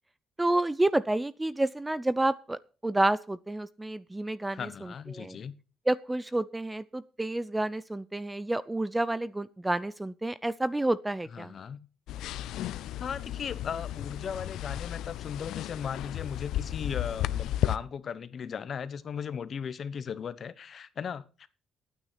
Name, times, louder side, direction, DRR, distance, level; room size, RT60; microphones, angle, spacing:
voice 1, 0.4-5.4 5.9-11.5, right 1 dB, 10° right, 0.5 m, -29 dB
voice 2, 4.5-5.5 11.3-11.9 13.0-21.5, left 7 dB, 40° left, 1.0 m, -37 dB
sound 1, 12.1-17.8, left 13 dB, 80° left, 0.6 m, -34 dB
12.0 x 9.5 x 5.7 m
cardioid pair, 145°, 0 cm